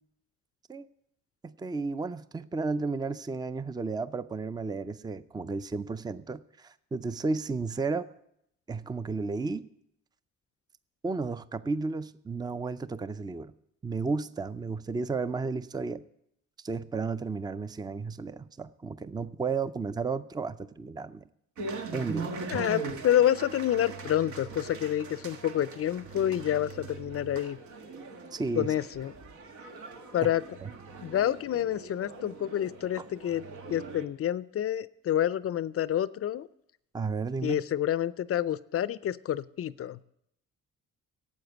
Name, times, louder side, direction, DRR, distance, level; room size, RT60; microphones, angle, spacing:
voice 1, 1.4-8.1 8.7-9.6 11.0-13.5 13.8-16.0 16.6-21.3 21.9-22.4 28.3-28.7 30.6-30.7 36.9-37.6, right 4 dB, 15° right, 14 dB, 0.5 m, -33 dB
sound 1, 21.6-34.1, right 4 dB, 70° right, 1.6 m, -41 dB
voice 2, 22.5-27.6 28.6-29.1 30.1-30.4 31.0-33.4 33.7-36.5 37.4-40.0, left 11 dB, 50° left, 18 dB, 0.5 m, -28 dB
12.0 x 8.1 x 8.0 m, 0.75 s
cardioid pair, 90°, 30 cm